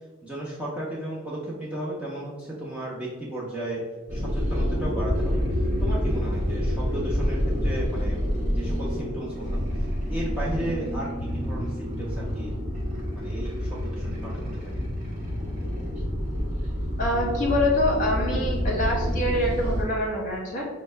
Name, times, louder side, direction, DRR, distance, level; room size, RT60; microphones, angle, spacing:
voice 1, 0.2-3.8 4.1-5.4 5.8-8.2 8.5-12.5 13.1-14.8, right 1 dB, 5° right, -7 dB, 0.4 m, -34 dB
sound 1, 4.1-19.8, equal, 35° right, 1.1 m, -28 dB
voice 2, 17.0-20.6, left 1 dB, 35° left, -2 dB, 0.9 m, -25 dB
5.2 x 2.1 x 3.2 m, 1.3 s
head